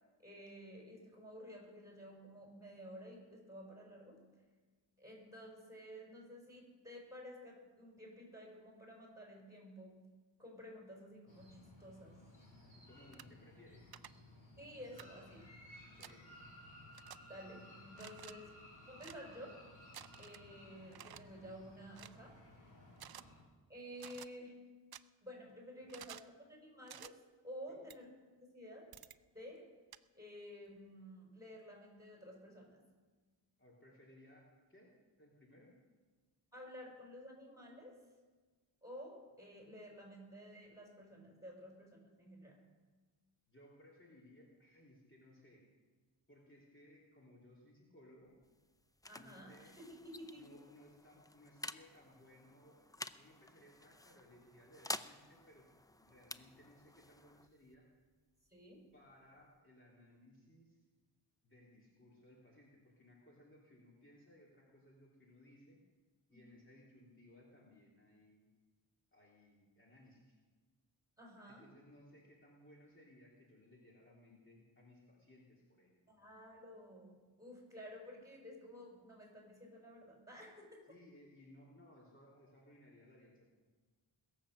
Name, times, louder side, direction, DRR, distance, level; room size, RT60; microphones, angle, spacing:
voice 1, 0.2-4.2 5.0-10.0 10.4-12.2 14.6-15.5 17.3-18.6 18.8-19.6 20.2-22.3 23.7-24.6 25.2-27.1 27.4-28.1 28.4-28.9 29.3-29.6 30.1-32.8 36.5-38.0 38.8-42.6 49.1-49.5 49.8-50.5 58.5-58.9 66.3-66.6 71.2-71.6 76.1-80.8, equal, 5° right, -1 dB, 5.4 m, -52 dB
sound 1, 11.3-23.4, left 1 dB, 45° left, 5.5 m, -58 dB
voice 2, 12.6-13.9 15.8-16.4 18.4-18.5 25.8-25.9 27.7-27.9 33.6-34.9 35.2-35.7 43.5-45.6 46.3-48.3 49.1-49.7 50.3-52.9 53.1-55.7 56.0-57.8 58.9-60.8 61.4-65.8 66.3-68.5 69.1-70.4 71.4-76.2 80.9-83.5, left 1 dB, 25° left, -4 dB, 3.1 m, -62 dB
sound 2, 13.1-13.3 13.9-14.1 15.0-15.1 16.0-16.1 16.9-17.2 17.9-18.3 19.0-19.2 19.9-20.4 20.9-21.2 21.9-22.2 23.0-23.2 24.0-24.3 24.9-25.0 25.9-26.3 26.9-27.1 27.9-28.0 28.9-29.2 29.9-30.0, right 10 dB, 55° right, 0.5 m, -52 dB
sound 3, 48.2-59.6, left 2 dB, 10° left, 0.4 m, -51 dB
21.5 x 7.5 x 6.5 m, 1.3 s
wide cardioid pair, 75°, 46 cm